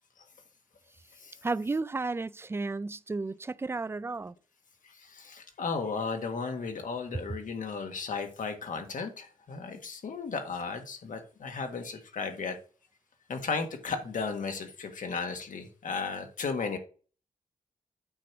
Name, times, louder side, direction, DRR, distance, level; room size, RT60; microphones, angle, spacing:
voice 1, 1.4-4.3, right 3 dB, 15° right, 0.3 m, -33 dB
voice 2, 5.0-12.5 13.3-16.8, left 4 dB, 70° left, 1.5 m, -35 dB
8.7 x 3.1 x 5.9 m
cardioid pair, 85°, 14 cm